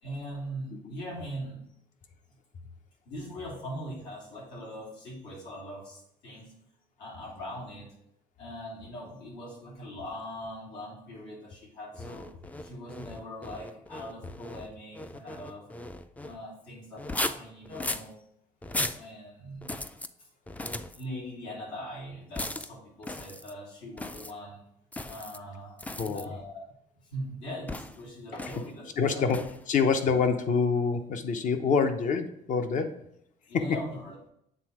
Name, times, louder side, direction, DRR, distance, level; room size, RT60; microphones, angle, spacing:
voice 1, 0.0-1.7 3.0-6.6 7.0-7.9 8.4-12.3 12.6-15.7 16.2-18.2 18.7-19.7 20.9-24.6 25.1-26.6 27.1-29.3 33.5-34.1, equal, 80° left, -4 dB, 2.9 m, -41 dB
sound 1, 11.9-16.4 17.0-18.1 18.6-19.0 19.6-20.1 20.5-21.0 22.4-22.7 23.0-23.5 24.0-24.3 24.9-25.4 25.8-26.2 27.7-28.0 28.4-28.7 29.3-29.6, left 1 dB, 10° left, 0.3 m, -37 dB
voice 2, 26.0-26.4 29.0-33.0 33.5-33.8, left 5 dB, 50° left, 8 dB, 0.8 m, -26 dB
8.2 x 3.6 x 4.7 m, 0.74 s
cardioid pair, 110°, 17 cm